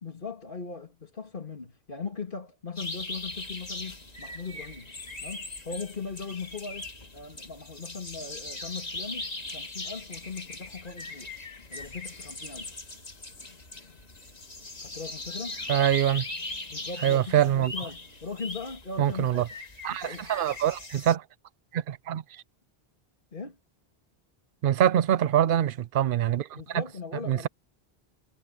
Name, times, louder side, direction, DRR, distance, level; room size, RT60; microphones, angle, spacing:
voice 1, 0.0-4.9 5.2-11.3 11.7-12.8 14.8-15.6 16.7-19.6 19.9-20.3 23.3-23.6 26.5-27.5, left 4 dB, 55° left, 2.7 m, -39 dB
sound 1, 2.8-21.2, left 2 dB, 40° left, 2.1 m, -40 dB
sound 2, 3.1-18.6, left 3 dB, 80° left, 2.9 m, -57 dB
voice 2, 15.7-16.3 17.0-17.7 19.0-19.4 19.8-21.2 21.7-22.4 24.6-26.8 27.3-27.5, right 11 dB, 65° right, 0.7 m, -24 dB
omnidirectional pair, 1.0 m